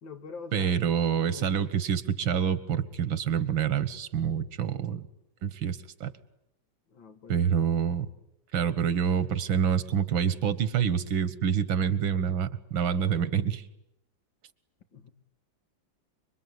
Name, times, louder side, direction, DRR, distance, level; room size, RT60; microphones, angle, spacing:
voice 1, 0.0-0.7 1.1-1.7 6.9-7.4 14.9-15.1, left 5 dB, 75° left, 2.7 m, -44 dB
voice 2, 0.5-5.0 5.4-6.1 7.3-8.1 8.5-13.6, right 7 dB, 85° right, 2.1 m, -27 dB
26.0 x 24.0 x 9.7 m
omnidirectional pair, 2.1 m